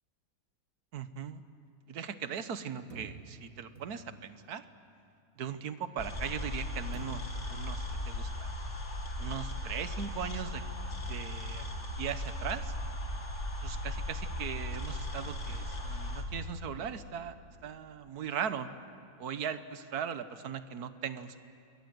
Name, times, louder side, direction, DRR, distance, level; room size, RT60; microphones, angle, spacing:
voice 1, 0.9-1.4 1.9-4.6 5.4-8.5 9.2-10.6 11.1-11.7 12.0-12.7 13.6-17.4 17.6-18.7 19.2-21.4, right 8 dB, 75° right, 11 dB, 1.5 m, -39 dB
sound 1, 2.9-4.4 6.9-7.5, right 5 dB, 60° right, 1.7 m, -50 dB
sound 2, 6.0-16.2, left 1 dB, 45° left, 2.5 m, -37 dB
28.5 x 22.0 x 7.8 m, 2.6 s
omnidirectional pair, 1.7 m